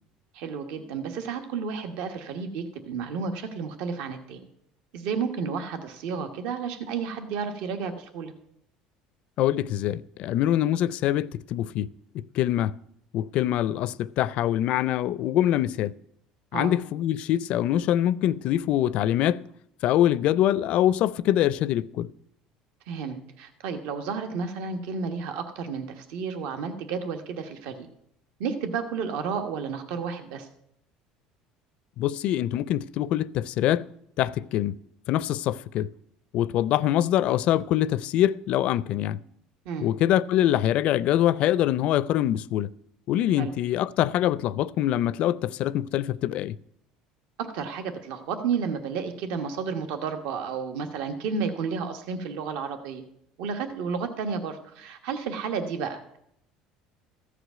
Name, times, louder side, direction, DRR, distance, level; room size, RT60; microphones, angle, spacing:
voice 1, 0.3-4.4 4.9-8.3 16.5-16.8 22.9-27.9 28.4-30.5 39.6-39.9 43.4-43.5 47.4-53.0 53.4-56.2, right 5 dB, 75° right, 1.2 m, -32 dB
voice 2, 9.4-11.9 12.1-12.7 13.1-15.9 16.5-19.4 19.8-22.1 32.0-33.9 34.2-34.8 35.1-35.9 36.3-39.2 39.8-42.7 43.1-46.6, left 12 dB, 55° left, 0.4 m, -24 dB
14.5 x 5.0 x 9.1 m
cardioid pair, 135°, 2 cm